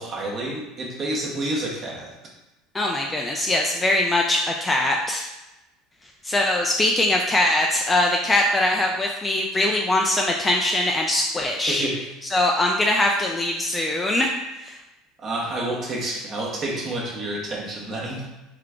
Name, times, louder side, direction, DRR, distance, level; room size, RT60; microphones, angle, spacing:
voice 1, 0.0-2.1 11.7-12.0 15.2-18.3, right 1 dB, 30° right, -2 dB, 0.9 m, -29 dB
voice 2, 2.7-5.2 6.2-11.8 12.3-14.3 14.6-14.8, left 1 dB, 10° left, 0 dB, 0.3 m, -22 dB
3.7 x 3.3 x 3.6 m, 0.98 s
cardioid pair, 155°, 0 cm